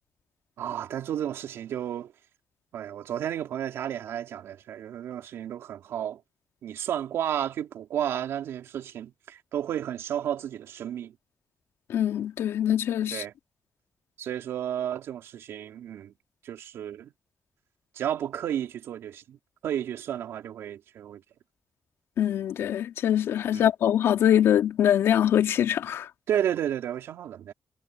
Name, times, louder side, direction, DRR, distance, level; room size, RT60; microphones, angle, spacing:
voice 1, 0.6-2.1 2.7-6.2 6.6-11.1 13.1-13.3 14.2-16.1 16.4-17.1 17.9-19.4 19.6-21.2 23.5-23.7 26.3-27.5, right 10 dB, 85° right, 3.3 m, -32 dB
voice 2, 11.9-13.2 22.2-26.1, left 10 dB, 85° left, 3.0 m, -23 dB
supercardioid pair, 50°, 4 cm